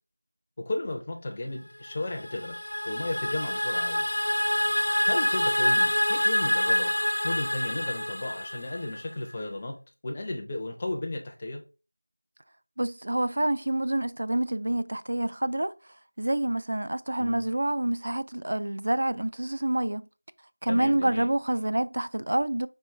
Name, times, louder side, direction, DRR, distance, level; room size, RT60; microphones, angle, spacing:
voice 1, 0.6-2.6 2.8-4.0 5.0-6.9 7.2-11.6 17.2-17.5 20.7-21.3, left 2 dB, 15° left, 0.5 m, -34 dB
sound 1, 1.9-9.1, left 1 dB, 60° left, 0.7 m, -27 dB
voice 2, 12.8-15.7 16.2-20.1 20.6-22.7, right 1 dB, 45° right, 0.3 m, -27 dB
4.5 x 3.0 x 3.2 m
figure-of-eight pair, 175°, 0 cm